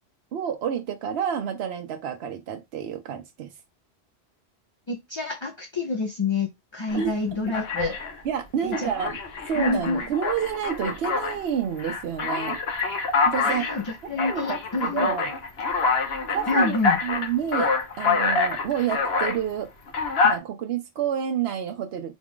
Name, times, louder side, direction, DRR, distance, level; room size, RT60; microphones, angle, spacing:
voice 1, 0.3-3.5 6.9-7.1 8.2-9.2 9.5-12.6 13.3-13.8 14.2-15.3 16.3-17.7 18.0-19.7 20.2-22.1, right 8 dB, 75° right, 0.9 m, -29 dB
voice 2, 4.9-8.0 8.6-8.9 9.5-10.1 13.4-13.8 14.1-15.1 16.5-17.0, left 3 dB, 30° left, 0.6 m, -28 dB
Alarm, 6.9-7.1 7.5-8.2 8.7-11.4 11.8-19.4 19.9-20.4, left 4 dB, 70° left, 1.2 m, -26 dB
4.1 x 2.4 x 3.5 m
omnidirectional pair, 1.1 m